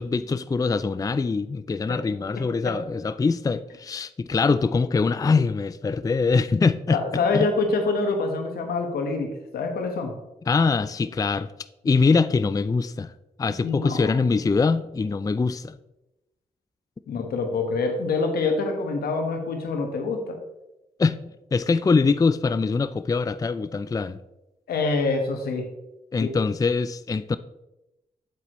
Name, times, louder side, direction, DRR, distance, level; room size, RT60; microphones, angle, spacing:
voice 1, 0.0-7.5 10.5-11.5 11.8-13.1 13.4-15.8 21.0-21.2 21.5-24.2 26.1-27.4, left 4 dB, 25° left, 13 dB, 0.4 m, -23 dB
voice 2, 2.4-2.7 4.4-4.5 6.9-10.2 13.6-14.2 17.1-20.4 24.7-25.7 26.2-26.3, left 3 dB, 85° left, 4 dB, 1.3 m, -26 dB
8.4 x 7.8 x 3.1 m, 0.95 s
supercardioid pair, 50°, 16 cm